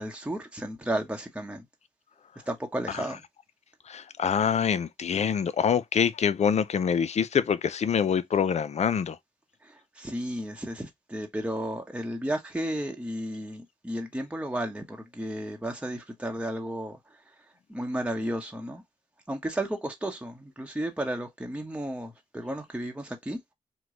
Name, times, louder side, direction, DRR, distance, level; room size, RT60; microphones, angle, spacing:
voice 1, 0.0-1.6 2.5-3.2 9.6-17.3 17.7-18.8 19.3-23.4, right 1 dB, 10° right, 0.9 m, -33 dB
voice 2, 3.9-9.2, left 7 dB, 55° left, 0.4 m, -25 dB
3.1 x 2.2 x 3.7 m
supercardioid pair, 40°, 14 cm